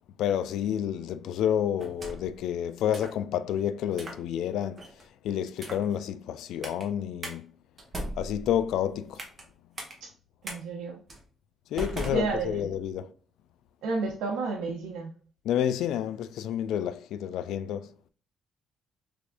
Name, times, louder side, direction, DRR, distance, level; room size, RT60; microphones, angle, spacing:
voice 1, 0.2-4.8 5.2-7.5 8.2-9.2 11.7-13.1 15.5-17.9, left 10 dB, 80° left, 0.3 m, -29 dB
sound 1, 1.8-2.4 2.9-3.2 3.9-4.2 4.8-5.1 5.6-5.9 6.6-6.8 7.2-7.4 7.8-9.5 9.8-9.9 10.4-10.6 11.1-11.2 11.8-12.8, right 1 dB, 25° right, 1.1 m, -38 dB
voice 2, 10.4-11.0 11.9-12.8 13.8-15.1, right 3 dB, 90° right, 0.7 m, -32 dB
3.4 x 3.4 x 2.5 m
cardioid pair, 115°, 0 cm